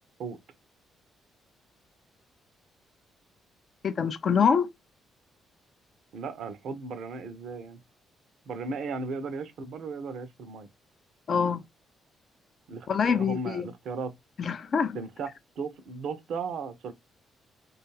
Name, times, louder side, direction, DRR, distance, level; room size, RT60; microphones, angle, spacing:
voice 1, 3.8-4.7 11.3-11.6 12.9-13.7 14.4-15.0, left 6 dB, 50° left, 0.3 m, -25 dB
voice 2, 6.1-7.8 8.5-10.7 12.7-14.1 14.9-16.9, right 4 dB, 60° right, 0.5 m, -36 dB
2.4 x 2.3 x 3.0 m
figure-of-eight pair, 40°, 0 cm